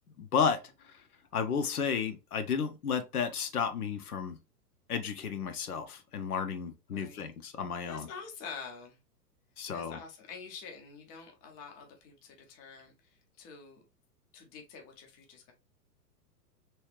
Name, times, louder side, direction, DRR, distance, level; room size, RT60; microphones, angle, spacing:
voice 1, 0.2-0.6 1.3-4.4 4.9-8.1 9.6-10.0, left 6 dB, 65° left, 0.8 m, -32 dB
voice 2, 6.9-7.3 7.8-9.0 9.7-13.8 14.3-15.5, left 5 dB, 20° left, 0.5 m, -47 dB
3.1 x 3.1 x 3.1 m
figure-of-eight pair, 100°, 48 cm